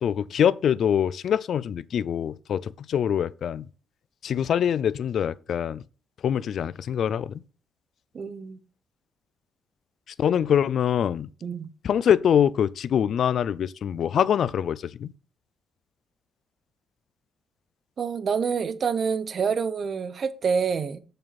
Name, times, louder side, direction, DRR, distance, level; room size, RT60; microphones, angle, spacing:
voice 1, 0.0-3.7 4.2-5.8 6.2-7.4 10.2-11.3 11.8-15.1, left 9 dB, 60° left, 0.4 m, -24 dB
voice 2, 8.1-8.6 11.4-11.7 18.0-21.0, right 6 dB, 50° right, 0.9 m, -27 dB
7.0 x 5.6 x 4.1 m
cardioid pair, 90°, 0 cm